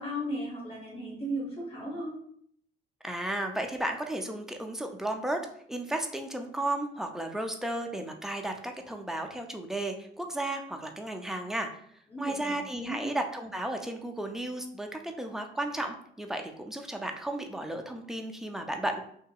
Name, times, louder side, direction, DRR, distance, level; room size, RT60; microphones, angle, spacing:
voice 1, 0.0-2.2 12.1-13.1, equal, 30° left, -3 dB, 1.0 m, -36 dB
voice 2, 3.0-5.4 5.7-11.7 12.2-19.0, right 1 dB, ahead, 3 dB, 0.3 m, -34 dB
2.8 x 2.6 x 2.3 m, 0.65 s
cardioid pair, 90°, 20 cm